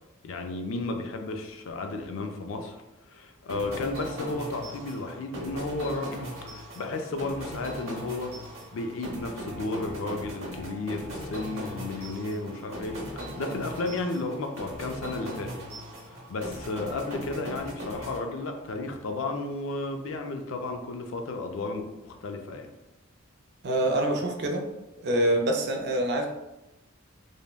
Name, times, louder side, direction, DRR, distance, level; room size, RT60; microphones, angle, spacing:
voice 1, 0.2-2.8 3.1-8.3 8.7-15.6 16.1-22.7, left 2 dB, 70° left, 4 dB, 0.4 m, -33 dB
sound 1, 3.5-18.8, equal, 75° right, 0.8 m, -39 dB
voice 2, 23.6-24.6 25.0-26.3, right 1 dB, 55° right, 2 dB, 0.4 m, -25 dB
3.4 x 2.0 x 2.3 m, 0.96 s
head